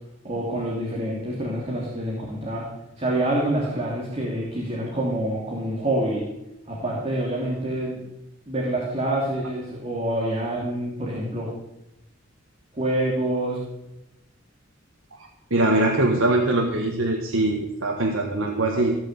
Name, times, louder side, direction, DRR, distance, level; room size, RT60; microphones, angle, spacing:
voice 1, 0.2-2.7 3.0-6.3 6.7-8.0 8.5-11.5 12.7-13.6, right 1 dB, 30° right, -3 dB, 3.0 m, -26 dB
voice 2, 15.5-19.0, right 2 dB, 85° right, 1 dB, 1.7 m, -22 dB
18.0 x 6.4 x 8.2 m, 0.91 s
head